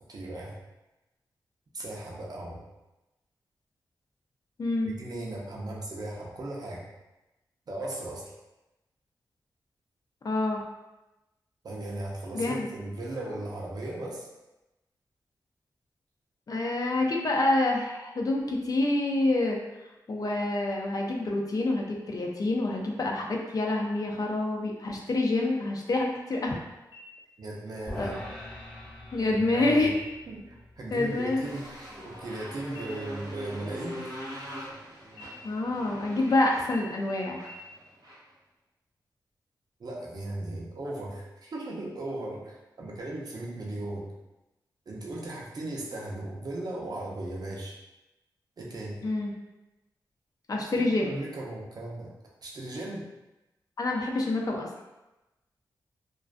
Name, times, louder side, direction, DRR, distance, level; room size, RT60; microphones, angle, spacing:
voice 1, 0.1-0.6 1.7-2.6 4.8-6.9 7.7-8.2 11.6-14.3 27.4-28.1 29.3-29.9 30.3-31.7 32.0-34.0 39.8-44.1 44.9-47.8 48.6-49.0 50.7-52.1 52.4-53.0, right 1 dB, 55° right, -3 dB, 0.6 m, -37 dB
voice 2, 4.6-4.9 10.2-10.6 12.3-12.7 16.5-19.6 20.1-26.6 28.0-28.2 29.1-30.0 30.9-31.5 35.4-37.4 49.0-49.3 50.5-51.1 53.8-54.7, left 2 dB, 50° left, 0 dB, 0.5 m, -27 dB
sound 1, 26.9-27.6 28.0-28.1 28.6-29.1 29.8-30.4 30.8-31.0 31.3-32.4 32.7-34.7 35.1-35.9 36.3-36.4 36.7-36.8 37.1-37.2 37.4-37.5, left 2 dB, 80° left, 0.8 m, -51 dB
sound 2, 27.9-34.2, left 1 dB, 5° left, 0.9 m, -45 dB
Motorcycle, 30.9-38.3, equal, 85° right, 1.0 m, -43 dB
2.4 x 2.2 x 2.4 m, 1.0 s
cardioid pair, 70°, 8 cm